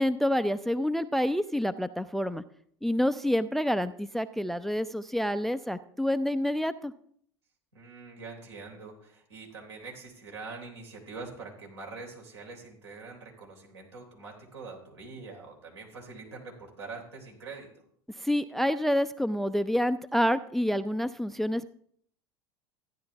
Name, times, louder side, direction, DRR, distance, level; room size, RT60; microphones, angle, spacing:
voice 1, 0.0-2.4 2.8-6.9 18.2-21.7, equal, ahead, 13 dB, 0.4 m, -28 dB
voice 2, 7.7-17.7, right 4 dB, 85° right, 0 dB, 3.6 m, -44 dB
14.5 x 10.5 x 3.4 m, 0.62 s
hypercardioid pair, 85°, 14 cm